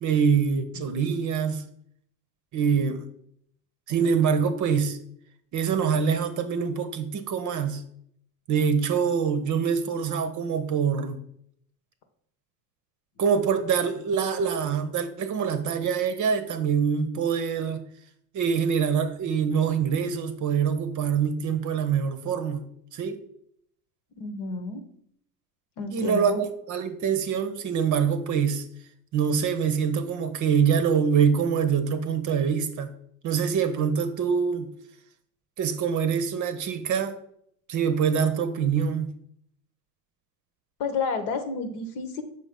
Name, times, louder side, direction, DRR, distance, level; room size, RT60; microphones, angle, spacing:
voice 1, 0.0-1.6 2.5-3.0 3.9-5.0 5.5-7.8 8.5-11.2 13.2-17.8 18.3-22.6 22.9-23.2 25.9-28.6 29.1-32.9 33.2-34.7 35.6-37.2 37.7-39.1, right 7 dB, 40° right, 0.7 m, -25 dB
voice 2, 24.2-24.8 25.8-26.4 40.8-42.2, left 4 dB, 60° left, 1.1 m, -30 dB
6.3 x 4.0 x 3.7 m
hypercardioid pair, 75°, 47 cm